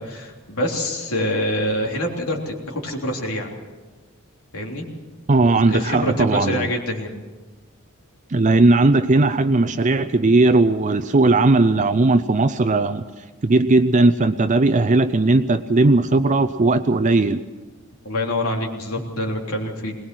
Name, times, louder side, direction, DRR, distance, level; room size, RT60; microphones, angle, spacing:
voice 1, 0.0-3.5 4.5-4.9 5.6-7.2 18.0-20.0, left 1 dB, 80° left, 0 dB, 3.4 m, -25 dB
voice 2, 5.3-6.7 8.3-13.0 13.4-17.4, right 2 dB, 35° right, 9 dB, 0.6 m, -17 dB
22.0 x 19.0 x 6.2 m, 1.2 s
head